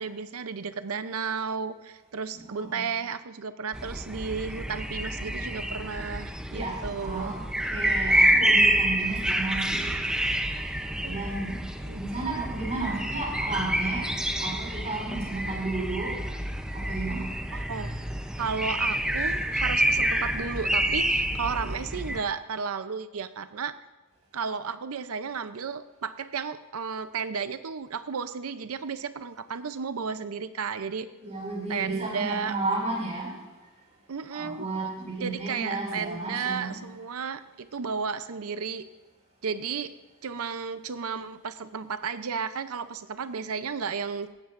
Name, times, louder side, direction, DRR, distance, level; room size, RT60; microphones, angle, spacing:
voice 1, 0.0-7.4 11.0-11.2 11.9-12.0 17.5-17.9 18.4-23.8 24.3-31.1 31.7-32.6 34.1-34.6 35.2-38.8 39.4-39.9 40.2-44.3, right 6 dB, 70° right, 11 dB, 0.6 m, -33 dB
voice 2, 2.3-2.9 6.5-7.4 7.7-10.6 11.1-11.6 11.9-14.1 14.4-16.3 16.7-17.3 31.2-33.3 34.3-36.8, right 2 dB, 30° right, -2 dB, 5.1 m, -33 dB
sound 1, 3.7-22.2, right 1 dB, 5° right, 0.6 m, -28 dB
17.5 x 14.0 x 2.5 m, 1.1 s
head